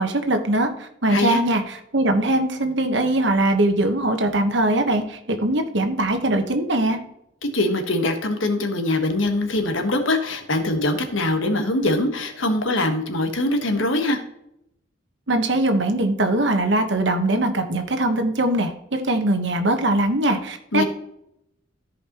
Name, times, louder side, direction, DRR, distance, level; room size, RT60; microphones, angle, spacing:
voice 1, 0.0-7.0 15.3-20.8, right 1 dB, 65° right, 6 dB, 1.2 m, -21 dB
voice 2, 1.1-1.4 7.4-14.2 20.7-20.8, left 2 dB, 85° left, 5 dB, 1.4 m, -22 dB
14.0 x 5.2 x 3.0 m, 0.78 s
head